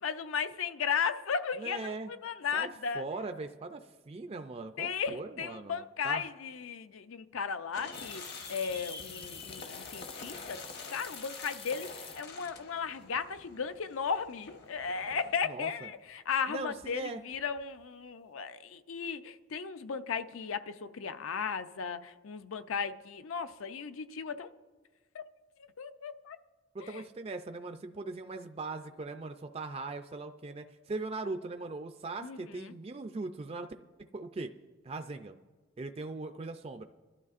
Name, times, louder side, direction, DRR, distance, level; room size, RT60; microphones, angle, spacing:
voice 1, 0.0-3.0 4.8-10.6 10.9-24.5 25.1-25.2 25.8-26.4 26.8-27.0 32.2-32.7, left 6 dB, 70° left, 0.5 m, -36 dB
voice 2, 1.6-2.1 2.5-6.3 15.4-15.9 16.5-17.2 26.7-33.7 34.1-34.5 34.8-35.4 35.8-36.8, right 3 dB, 30° right, 0.3 m, -40 dB
sound 1, 7.7-15.4, left 4 dB, 50° left, 1.0 m, -48 dB
sound 2, 7.9-12.6 12.9-13.5 13.8-13.9 16.6-17.0 17.3-17.8, left 6 dB, 25° left, 0.5 m, -48 dB
24.5 x 12.0 x 2.5 m
head